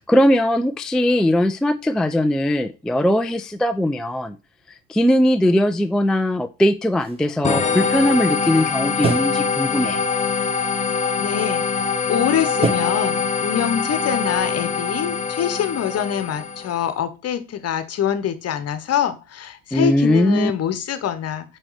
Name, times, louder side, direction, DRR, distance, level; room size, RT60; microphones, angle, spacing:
voice 1, 0.0-4.4 4.9-10.0 19.7-20.5, left 1 dB, ahead, 8 dB, 0.3 m, -19 dB
sound 1, 7.0-8.6 9.0-9.5 9.8-11.0 11.3-11.7 12.6-12.7, right 3 dB, 15° right, 1.4 m, -28 dB
sound 2, 7.4-16.8, left 5 dB, 20° left, 0.8 m, -23 dB
voice 2, 11.2-11.6 12.1-21.6, left 9 dB, 40° left, 12 dB, 1.1 m, -24 dB
8.6 x 3.2 x 4.8 m, 0.31 s
hypercardioid pair, 65°, 37 cm